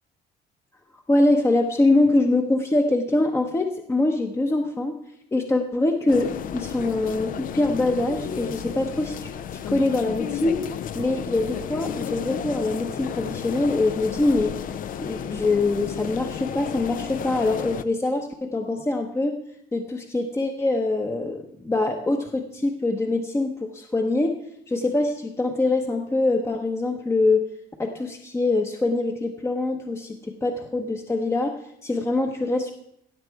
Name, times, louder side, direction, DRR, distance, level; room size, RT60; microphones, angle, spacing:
voice 1, 1.1-5.0 5.3-10.7 10.9-14.7 15.0-19.4 19.7-24.4 24.7-27.5 27.8-32.7, left 2 dB, 15° left, 4 dB, 0.8 m, -24 dB
sound 1, 6.1-17.8, left 8 dB, 55° left, 0.6 m, -33 dB
16.5 x 6.7 x 4.7 m, 0.78 s
cardioid pair, 110°, 17 cm